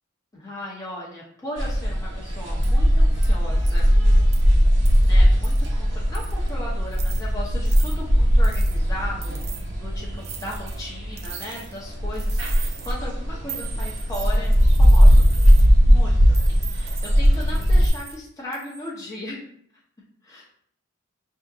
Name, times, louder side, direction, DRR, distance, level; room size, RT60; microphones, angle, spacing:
voice 1, 0.3-3.9 4.8-15.3 15.9-19.5 20.2-20.4, left 1 dB, 15° left, -4 dB, 0.6 m, -37 dB
sound 1, 1.6-17.9, equal, 60° right, 0.8 m, -19 dB
sound 2, 2.6-2.8 3.2-3.3 3.6-3.9 4.3-4.4 4.9-5.1 5.4-5.7 6.1-6.5 6.9-7.2 7.7-8.0 8.4-8.8 9.2-9.6 10.2-10.8 11.2-11.8 12.1-12.9 13.5-15.7 16.3-18.2 18.5-18.9, right 8 dB, 30° right, 0.4 m, -39 dB
5.5 x 2.7 x 2.5 m, 0.65 s
head